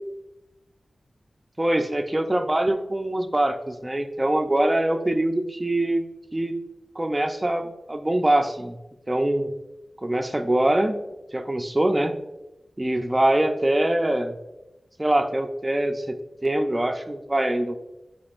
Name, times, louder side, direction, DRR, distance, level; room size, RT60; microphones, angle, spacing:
voice 1, 1.6-6.0 6.3-6.5 7.0-8.8 9.1-9.5 10.0-11.0 11.3-12.1 12.8-14.3 15.0-16.2 16.4-17.8, right 1 dB, 20° right, 5 dB, 0.7 m, -23 dB
10.5 x 5.2 x 2.5 m, 0.98 s
wide cardioid pair, 85°, 0 cm